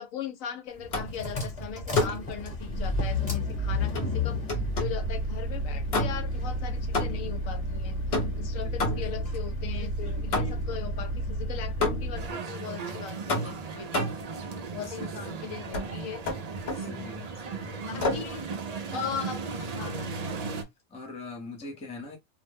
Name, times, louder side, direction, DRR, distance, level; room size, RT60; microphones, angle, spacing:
voice 1, 0.0-4.4 4.8-8.0 8.3-14.2 14.7-16.5 16.8-17.2 17.9-18.4 18.9-20.1 21.6-21.8, left 7 dB, 85° left, 1.1 m, -39 dB
sound 1, 0.8-12.3, left 1 dB, 30° left, 1.1 m, -31 dB
sound 2, 0.9-1.3 1.9-2.3 3.9-5.1 5.9-6.4 6.9-7.4 8.1-9.3 10.3-10.8 11.8-12.3 13.3-14.3 15.7-15.9 16.2-16.9 18.0-18.3, left 2 dB, 55° left, 1.0 m, -30 dB
voice 2, 8.6-9.1 14.8-15.2 16.7-18.1 18.9-19.2 20.9-22.2, left 3 dB, 10° left, 0.3 m, -43 dB
sound 3, 12.1-20.6, right 4 dB, 80° right, 0.3 m, -36 dB
2.5 x 2.1 x 3.3 m
omnidirectional pair, 1.3 m